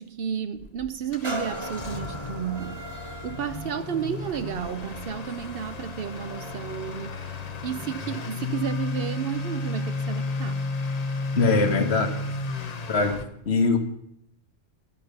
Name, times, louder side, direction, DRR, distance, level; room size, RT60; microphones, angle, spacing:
voice 1, 0.0-2.8 3.2-10.7 11.4-11.9, right 8 dB, 70° right, 0.8 m, -32 dB
Motor vehicle (road) / Accelerating revving vroom, 0.6-13.2, left 3 dB, 45° left, 0.8 m, -33 dB
sound 1, 1.2-8.8 9.4-9.5, right 1 dB, 25° right, 1.5 m, -40 dB
voice 2, 11.3-12.1 12.9-13.8, left 4 dB, 90° left, 1.5 m, -22 dB
11.0 x 9.5 x 6.7 m
omnidirectional pair, 1.1 m